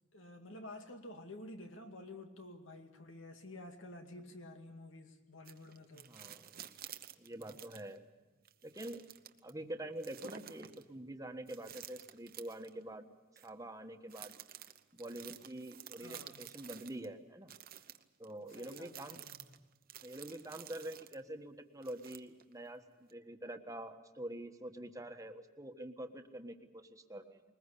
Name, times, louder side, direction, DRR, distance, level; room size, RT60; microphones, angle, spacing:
voice 1, 0.0-6.1 16.0-16.6 18.5-19.6, left 1 dB, 85° left, 2.3 m, -51 dB
sound 1, 5.5-8.0 8.5-9.5 10.0-10.8 11.5-12.7 13.4-13.5 14.1-17.1 17.5-21.2 21.8-22.5 23.1-23.2, right 10 dB, 50° right, 0.9 m, -52 dB
voice 2, 6.0-6.5 7.2-8.0 8.6-9.0 9.4-13.1 13.4-14.3 14.9-17.5 18.2-19.2 20.0-27.4, right 1 dB, 15° right, 1.4 m, -46 dB
21.0 x 20.5 x 8.4 m
head